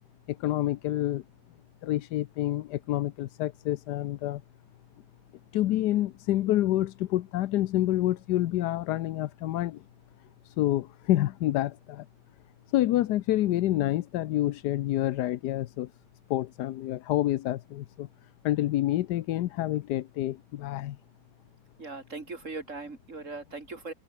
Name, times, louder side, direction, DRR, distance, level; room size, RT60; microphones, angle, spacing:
voice 1, 0.3-1.2 1.8-4.4 5.5-9.8 10.4-12.1 12.7-15.9 16.3-18.1 18.4-21.0, left 14 dB, 75° left, 1.2 m, -28 dB
voice 2, 21.8-23.9, right 3 dB, 45° right, 2.9 m, -39 dB
omnidirectional pair, 1.9 m